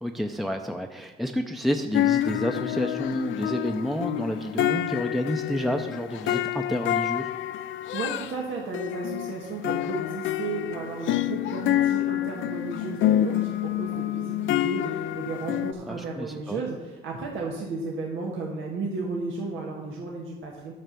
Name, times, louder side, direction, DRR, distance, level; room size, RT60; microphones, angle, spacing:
voice 1, 0.0-7.3 15.9-16.6, equal, ahead, 5 dB, 0.6 m, -29 dB
sound 1, 1.9-8.3 8.7-15.7, left 13 dB, 75° left, 0.5 m, -27 dB
voice 2, 7.9-20.7, right 3 dB, 85° right, -2 dB, 1.5 m, -34 dB
9.4 x 5.6 x 6.9 m, 1.2 s
cardioid pair, 90°, 20 cm